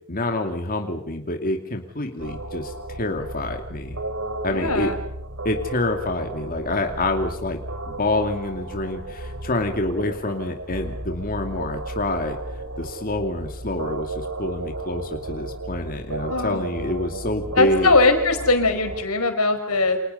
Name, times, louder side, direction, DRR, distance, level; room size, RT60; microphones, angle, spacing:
voice 1, 0.1-4.0 4.4-4.9 5.4-7.6 7.8-12.4 12.8-17.9, left 2 dB, 40° left, 4 dB, 2.5 m, -27 dB
sound 1, 2.2-19.1, right 2 dB, 65° right, 3.3 m, -33 dB
voice 2, 4.5-5.0 16.3-16.7 17.6-20.0, left 3 dB, 85° left, 7 dB, 5.2 m, -20 dB
29.5 x 28.0 x 5.6 m, 0.68 s
head